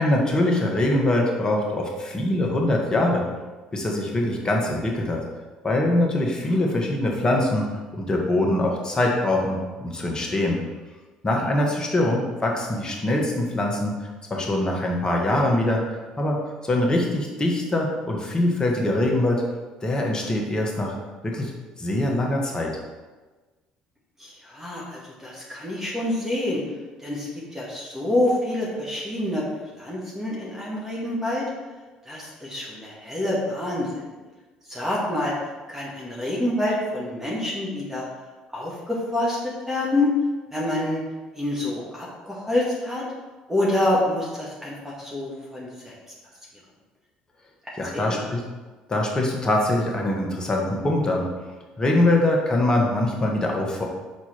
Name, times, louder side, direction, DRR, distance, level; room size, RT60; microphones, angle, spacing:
voice 1, 0.0-3.3 3.7-5.2 5.6-7.7 7.9-10.6 11.2-13.9 14.3-15.8 16.2-19.4 19.8-20.9 21.2-21.5 21.8-22.7 47.8-48.4 48.9-51.3 51.8-53.8, left 1 dB, 25° left, 0 dB, 1.7 m, -23 dB
voice 2, 24.2-26.6 27.0-29.4 29.7-31.5 32.1-33.9 34.7-35.3 35.7-38.0 38.5-40.1 40.5-41.0 41.4-43.0 43.5-45.9 47.9-48.3, left 1 dB, 10° right, -5 dB, 2.0 m, -27 dB
6.1 x 4.5 x 4.4 m, 1.3 s
hypercardioid pair, 65°, 3 cm